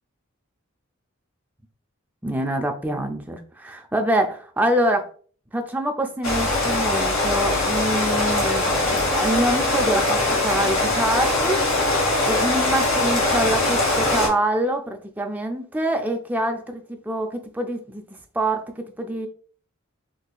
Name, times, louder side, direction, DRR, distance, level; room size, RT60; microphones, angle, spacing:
voice 1, 2.2-5.1 5.5-11.6 12.2-18.0 18.3-19.3, right 1 dB, 10° right, 4 dB, 0.4 m, -25 dB
Rain, 6.2-14.3, left 2 dB, 75° left, 1.2 m, -21 dB
3.8 x 2.7 x 2.3 m, 0.43 s
head